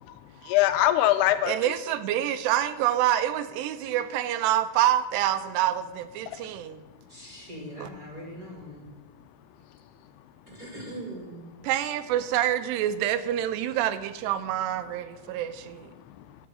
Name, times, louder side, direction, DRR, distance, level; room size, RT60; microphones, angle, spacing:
voice 1, 0.0-1.7 6.3-6.5 15.8-16.4, left 13 dB, 85° left, 10 dB, 2.5 m, -25 dB
voice 2, 1.5-6.8 7.8-7.9 11.6-15.9, right 12 dB, 85° right, 11 dB, 2.8 m, -27 dB
voice 3, 7.1-8.8 10.5-11.5, right 1 dB, 40° right, -2 dB, 1.3 m, -41 dB
10.0 x 6.1 x 7.4 m, 1.2 s
omnidirectional pair, 4.8 m